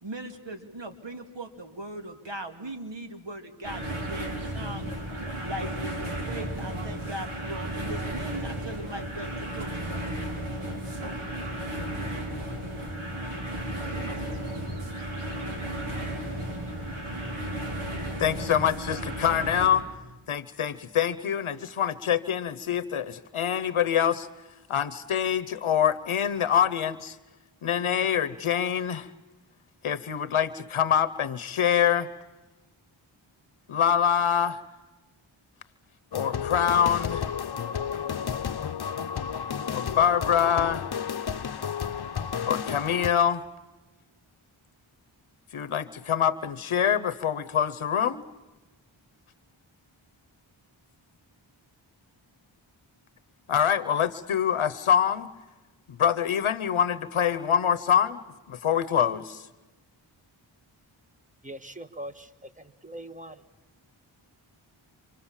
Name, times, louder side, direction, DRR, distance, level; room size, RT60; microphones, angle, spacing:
voice 1, 0.0-4.8 5.4-10.0, right 1 dB, 65° right, 2.5 m, -39 dB
sound 1, 3.6-19.7, right 1 dB, 85° right, 4.5 m, -34 dB
voice 2, 18.2-19.8 20.3-24.3 24.7-27.2 27.6-29.1 29.8-32.1 33.7-34.6 36.1-37.2 39.7-40.9 42.5-43.4 45.5-48.2 53.5-55.3 55.9-58.2 58.5-59.5, left 8 dB, 85° left, 0.9 m, -25 dB
sound 2, 36.1-43.1, left 7 dB, 55° left, 0.8 m, -32 dB
voice 3, 61.4-62.3 62.8-63.3, right 1 dB, 15° right, 1.5 m, -40 dB
27.5 x 26.5 x 7.3 m
cardioid pair, 55°, 48 cm